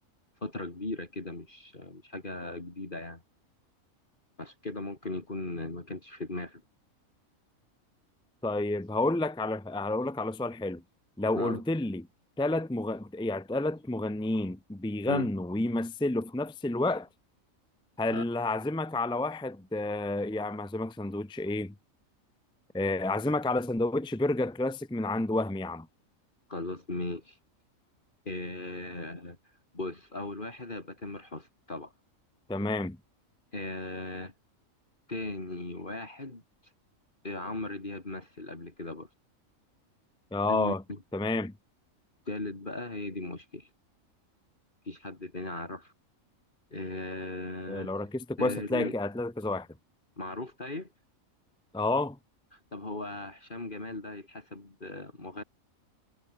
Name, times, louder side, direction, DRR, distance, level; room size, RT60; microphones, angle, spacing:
voice 1, 0.4-3.2 4.4-6.6 11.3-11.6 15.1-15.3 18.1-18.2 26.5-27.4 28.3-31.9 33.5-34.3 35.1-36.7 37.2-39.1 40.5-41.0 42.3-43.7 44.8-45.9 46.7-47.9 48.4-48.9 50.2-50.9 52.5-55.4, left 2 dB, 35° left, 3.5 m, -38 dB
voice 2, 8.4-10.8 11.2-12.0 12.4-17.1 18.0-21.7 22.7-25.9 32.5-33.0 40.3-40.8 41.1-41.5 47.7-49.7 51.7-52.2, left 2 dB, 5° left, 0.7 m, -30 dB
omnidirectional pair, 1.4 m